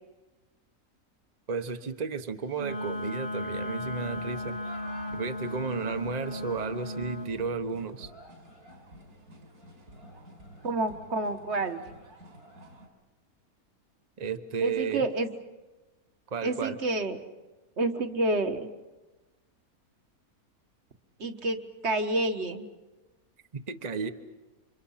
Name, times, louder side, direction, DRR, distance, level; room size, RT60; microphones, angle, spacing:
voice 1, 1.5-4.5 5.1-8.1 14.2-15.1 16.3-16.8 23.7-24.1, right 5 dB, 30° right, 8 dB, 1.2 m, -33 dB
Wind instrument woodwind instrument, 2.5-7.3, left 1 dB, 40° left, 1.0 m, -36 dB
sound 1, 3.6-12.9, equal, 75° right, 4.4 m, -50 dB
voice 2, 10.6-11.8 14.6-15.3 16.4-17.2 17.8-18.7 21.2-22.7, right 2 dB, 45° right, 8 dB, 1.7 m, -29 dB
30.0 x 26.5 x 5.8 m, 1.2 s
omnidirectional pair, 1.6 m